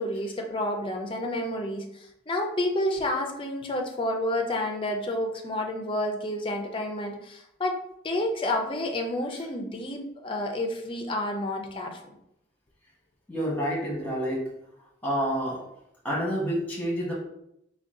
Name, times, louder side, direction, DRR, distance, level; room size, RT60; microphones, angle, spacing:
voice 1, 0.0-7.8 8.0-12.0, left 1 dB, 25° left, 2 dB, 0.5 m, -30 dB
voice 2, 13.3-14.5 15.0-15.6 16.0-17.1, equal, 10° left, -4 dB, 1.1 m, -28 dB
3.8 x 2.2 x 3.6 m, 0.78 s
head